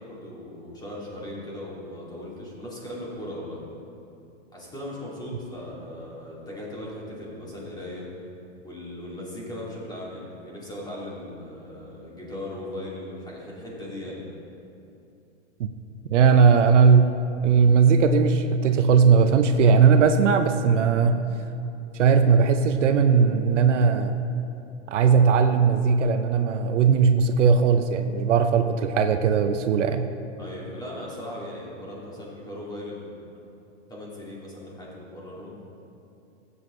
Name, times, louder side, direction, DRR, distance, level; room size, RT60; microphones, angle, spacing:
voice 1, 0.0-3.6 4.5-8.1 8.6-14.2 16.3-16.4 30.4-33.2 33.9-35.6, left 1 dB, 10° left, -5 dB, 2.4 m, -38 dB
voice 2, 16.1-17.1 17.4-21.3 22.0-24.2 24.9-30.1, right 6 dB, 75° right, 8 dB, 0.8 m, -18 dB
15.0 x 8.2 x 3.2 m, 2.7 s
hypercardioid pair, 135°, 36 cm